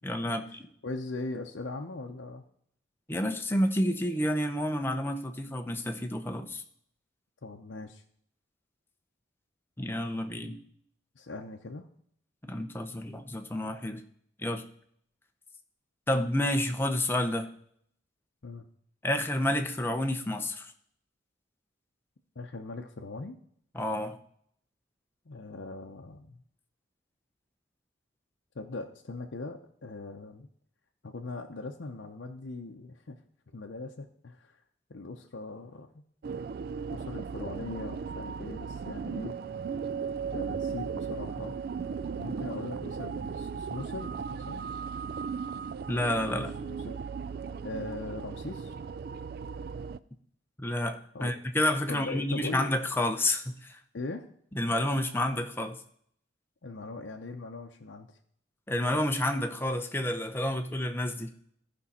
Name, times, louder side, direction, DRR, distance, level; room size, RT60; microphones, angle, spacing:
voice 1, 0.0-0.6 3.1-6.6 9.8-10.6 12.5-14.0 14.4-14.6 16.1-17.5 19.0-20.7 23.7-24.2 45.9-46.5 50.6-53.8 54.5-55.8 58.7-61.3, left 1 dB, 10° left, 5 dB, 0.7 m, -29 dB
voice 2, 0.8-2.4 7.4-8.0 11.2-11.9 18.4-18.7 22.4-23.3 25.3-26.4 28.5-30.5 31.0-33.2 33.5-34.5 34.9-36.0 36.9-39.4 40.3-41.5 42.2-44.7 46.6-47.0 47.6-48.7 51.1-51.4 51.9-52.7 53.9-54.3 56.6-58.1, left 3 dB, 70° left, 2 dB, 0.7 m, -40 dB
sound 1, 36.2-50.0, right 6 dB, 55° right, 0.3 m, -36 dB
14.5 x 5.3 x 4.2 m, 0.66 s
head